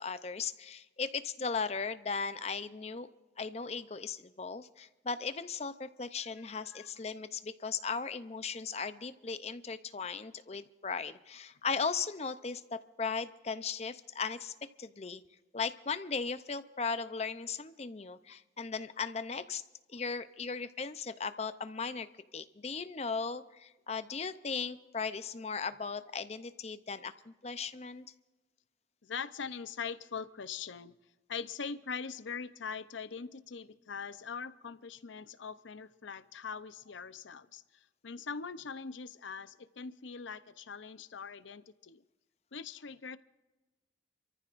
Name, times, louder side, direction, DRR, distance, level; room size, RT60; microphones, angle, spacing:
voice 1, 0.0-3.1 3.4-14.5 14.8-15.2 15.5-19.6 19.9-22.1 22.3-28.1, left 5 dB, 35° left, 12 dB, 0.6 m, -37 dB
voice 2, 6.4-6.9 18.3-18.4 19.9-20.0 29.0-31.0 31.3-42.0 42.5-43.2, left 5 dB, 85° left, 13 dB, 0.7 m, -42 dB
27.5 x 14.0 x 2.5 m, 1.1 s
head